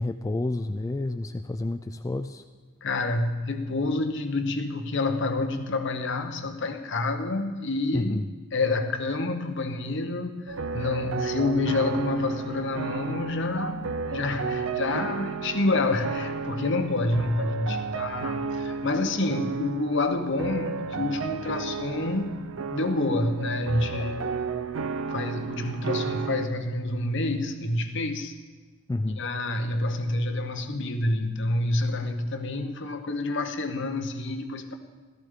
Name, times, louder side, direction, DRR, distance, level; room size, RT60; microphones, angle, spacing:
voice 1, 0.0-2.4 7.9-8.3 24.0-24.3 28.9-29.2, left 2 dB, 15° left, 7 dB, 0.3 m, -30 dB
voice 2, 2.8-8.2 8.5-22.4 22.7-24.2 25.1-28.3 29.2-34.7, left 2 dB, 60° left, 7 dB, 1.0 m, -28 dB
sound 1, 10.5-26.5, right 4 dB, 70° right, 0.5 m, -33 dB
17.0 x 13.5 x 3.8 m, 1.3 s
head